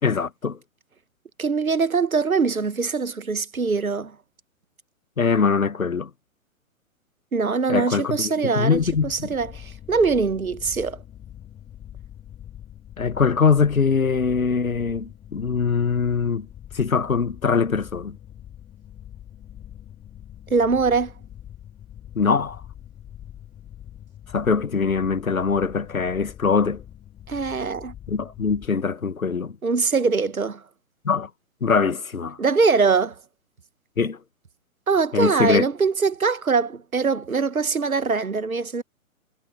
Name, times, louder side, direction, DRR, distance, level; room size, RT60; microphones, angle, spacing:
voice 1, 0.0-0.6 5.2-6.1 7.7-9.3 13.0-16.5 16.7-18.2 22.1-22.6 24.3-26.8 28.1-29.5 31.0-31.3 31.6-32.4 34.0-34.2 35.1-35.6, left 5 dB, 75° left, 1.6 m, -22 dB
voice 2, 1.4-4.1 7.3-11.0 20.5-21.1 27.3-27.9 29.6-30.6 32.4-33.2 34.9-38.8, right 4 dB, 80° right, 1.3 m, -22 dB
sound 1, 8.7-28.7, left 11 dB, 15° left, 5.1 m, -43 dB
figure-of-eight pair, 125°, 41 cm